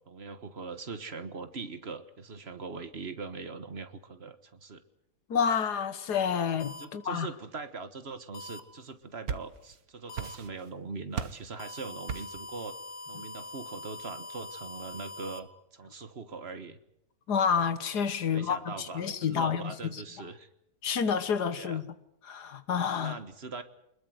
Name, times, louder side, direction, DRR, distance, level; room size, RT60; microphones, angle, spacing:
voice 1, 0.1-4.8 6.8-12.8 13.1-16.8 18.2-20.5 21.5-21.8 22.9-23.6, right 4 dB, 40° right, 1.6 m, -41 dB
voice 2, 5.3-7.3 17.3-20.0 20.8-21.8 22.2-23.2, left 7 dB, 90° left, 1.9 m, -29 dB
sound 1, 6.6-6.8 8.3-8.6 10.1-10.3 11.6-15.4, left 2 dB, 65° left, 2.1 m, -43 dB
sound 2, 8.9-9.8 10.1-10.8 11.1-11.5 12.1-12.5, right 7 dB, 70° right, 1.6 m, -37 dB
24.0 x 21.0 x 7.9 m
omnidirectional pair, 1.7 m